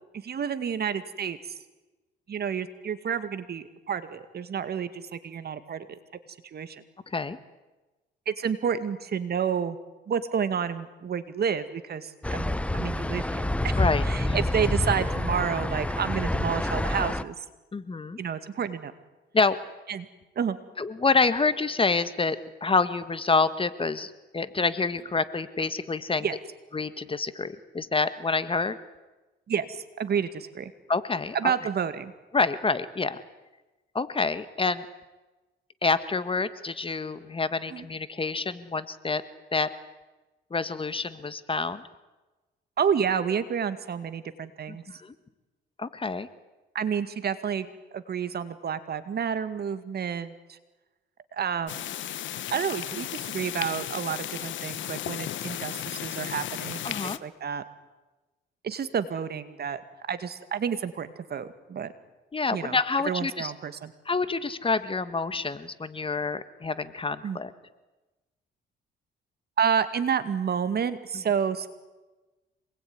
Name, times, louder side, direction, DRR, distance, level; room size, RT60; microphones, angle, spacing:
voice 1, 0.2-1.4 2.3-6.0 6.4-6.8 8.3-9.8 10.1-13.8 14.0-17.4 18.2-18.9 19.9-20.1 20.4-20.6 26.2-26.4 29.5-30.7 31.3-32.1 37.7-37.8 42.8-44.8 46.7-50.6 51.3-51.9 52.5-57.6 58.6-59.8 60.1-61.9 62.5-62.8 63.1-63.9 67.2-67.4 69.6-71.7, right 7 dB, 55° right, 12 dB, 2.2 m, -30 dB
voice 2, 7.1-7.4 13.8-14.4 17.7-18.2 19.3-19.6 20.8-26.2 26.7-28.8 30.9-31.5 32.3-33.2 33.9-34.8 35.8-39.2 39.5-39.7 40.5-41.8 44.7-45.1 45.8-46.3 56.8-57.2 62.3-63.5 64.0-67.5, left 4 dB, 25° left, 13 dB, 1.6 m, -27 dB
sound 1, 12.2-17.2, left 1 dB, 5° left, 0.8 m, -27 dB
sound 2, 51.7-57.2, left 12 dB, 70° left, 1.1 m, -35 dB
26.5 x 21.0 x 9.8 m, 1.1 s
cardioid pair, 90°, 20 cm